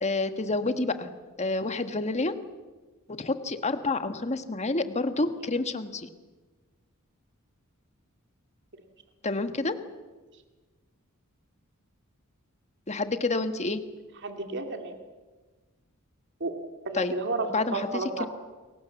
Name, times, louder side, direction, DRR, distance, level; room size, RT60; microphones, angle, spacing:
voice 1, 0.0-1.1 1.4-2.3 3.2-6.1 9.2-9.7 12.9-13.8 16.9-17.1 17.5-17.9 18.2-18.3, left 2 dB, 30° left, 9 dB, 1.5 m, -28 dB
voice 2, 14.2-15.0 16.4-16.5 16.8-18.3, right 3 dB, 55° right, 5 dB, 2.6 m, -31 dB
29.0 x 22.5 x 7.2 m, 1.3 s
head